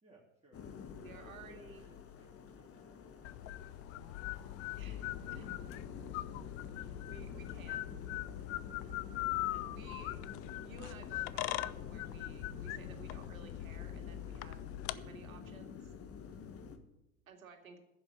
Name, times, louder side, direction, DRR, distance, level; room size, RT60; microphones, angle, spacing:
voice 1, 0.0-0.7 1.1-3.3 8.9-9.1, right 2 dB, 15° right, -5 dB, 3.1 m, -64 dB
sound 1, 0.5-16.8, left 6 dB, 35° left, 1.6 m, -49 dB
voice 2, 1.0-1.9 4.8-5.5 6.8-7.9 9.4-10.2 10.6-14.6 14.9-15.9 17.3-17.8, right 5 dB, 85° right, 4 dB, 2.3 m, -55 dB
sound 2, 3.2-15.0, left 15 dB, 55° left, 0.7 m, -41 dB
10.5 x 7.5 x 9.7 m, 0.90 s
hypercardioid pair, 85°, 40 cm